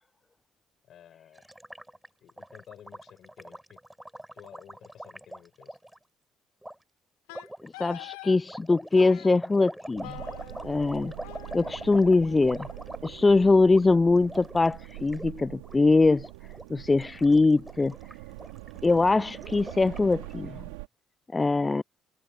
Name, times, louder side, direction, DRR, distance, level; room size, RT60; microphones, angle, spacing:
voice 1, 0.8-1.4 2.2-3.8 4.3-5.8, left 10 dB, 60° left, 7.5 m, -52 dB
Gurgling, 1.4-6.0 6.6-6.8 7.3-7.7 8.4-13.4 13.6-13.8 14.1-15.3 15.5-15.8 16.1-16.6 16.9-20.3, right 1 dB, 5° right, 3.9 m, -44 dB
Wind instrument woodwind instrument, 7.3-8.4 9.0-9.4 10.0-13.0, left 30 dB, 85° left, 7.9 m, -46 dB
voice 2, 7.6-10.2 10.6-11.1 11.5-12.7 13.0-16.3 16.7-17.9 18.8-20.6 21.3-21.8, left 3 dB, 25° left, 0.3 m, -22 dB
sound 1, 10.0-20.9, right 23 dB, 85° right, 2.8 m, -44 dB
hypercardioid pair, 60°, 0 cm